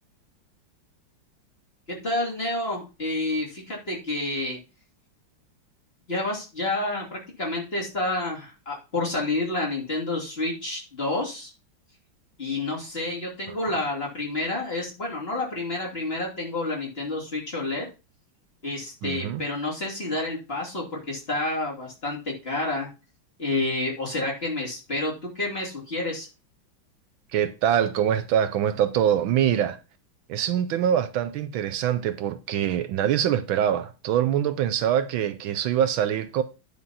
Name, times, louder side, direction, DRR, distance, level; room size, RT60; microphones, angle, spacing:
voice 1, 1.9-4.6 6.1-11.5 12.4-17.9 18.6-22.9 23.4-26.3, left 2 dB, 30° left, 2.9 m, -29 dB
voice 2, 19.0-19.4 27.3-29.8 30.3-36.4, right 10 dB, 75° right, 1.4 m, -24 dB
10.0 x 4.2 x 5.6 m
omnidirectional pair, 2.3 m